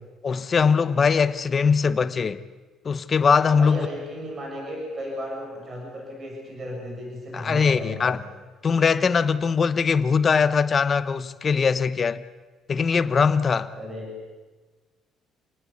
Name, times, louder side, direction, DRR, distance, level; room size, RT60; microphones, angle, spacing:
voice 1, 0.2-2.4 2.8-3.9 7.3-8.2 8.6-12.2 12.7-13.7, left 5 dB, 25° left, 0.9 m, -21 dB
voice 2, 3.5-8.3 13.7-14.1, equal, 30° right, 6.8 m, -35 dB
28.0 x 19.5 x 8.5 m
cardioid pair, 160°, 0 cm